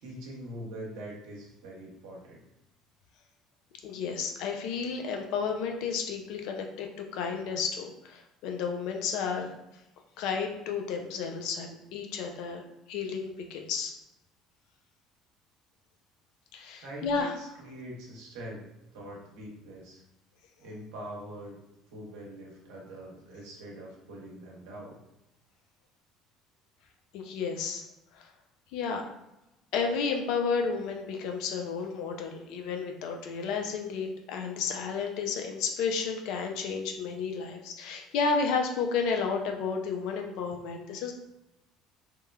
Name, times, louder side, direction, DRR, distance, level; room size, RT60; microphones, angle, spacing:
voice 1, 0.0-2.4 16.8-18.7 18.9-20.0 20.6-21.6 21.9-25.0, right 1 dB, 75° right, -2 dB, 0.7 m, -43 dB
voice 2, 3.8-9.5 10.2-12.6 12.9-14.0 16.5-17.3 27.1-27.8 28.1-28.3 28.7-29.0 29.7-41.1, left 5 dB, 70° left, 3 dB, 0.4 m, -32 dB
3.0 x 2.1 x 2.2 m, 0.92 s
hypercardioid pair, 65°, 0 cm